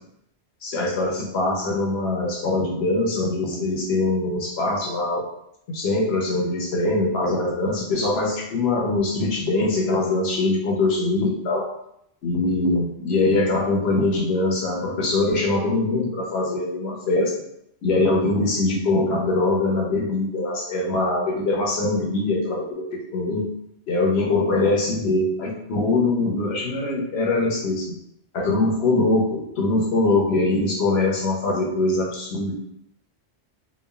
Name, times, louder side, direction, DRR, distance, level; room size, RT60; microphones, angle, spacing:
voice 1, 0.6-5.2 5.7-11.6 12.2-17.4 17.8-23.5 23.9-27.9 28.3-32.5, left 2 dB, 70° left, -2 dB, 0.8 m, -22 dB
3.0 x 2.2 x 2.2 m, 0.77 s
omnidirectional pair, 1.2 m